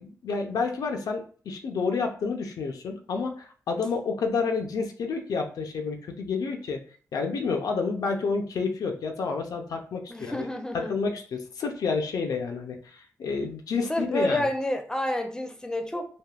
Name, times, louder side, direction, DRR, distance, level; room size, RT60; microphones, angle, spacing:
voice 1, 0.0-6.8 7.1-10.5 10.7-14.5, left 4 dB, 80° left, 0.5 m, -29 dB
voice 2, 10.1-10.9 13.9-16.2, left 1 dB, 10° left, 0.6 m, -29 dB
3.4 x 2.2 x 2.3 m
cardioid pair, 50°, 6 cm